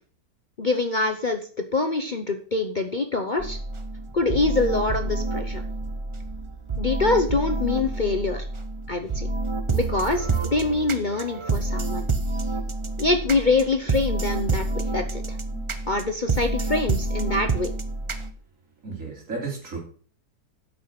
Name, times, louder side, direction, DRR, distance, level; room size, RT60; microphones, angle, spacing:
voice 1, 0.6-1.4 1.7-3.6 4.1-5.6 6.8-8.5 8.9-9.3 9.7-12.0 13.0-15.2 15.9-17.7, left 3 dB, 40° left, 6 dB, 0.8 m, -24 dB
sound 1, 3.4-18.3, right 3 dB, 35° right, 0.5 m, -28 dB
voice 2, 18.8-19.8, right 4 dB, 50° right, 0 dB, 3.5 m, -34 dB
8.8 x 6.2 x 5.9 m, 0.43 s
omnidirectional pair, 1.7 m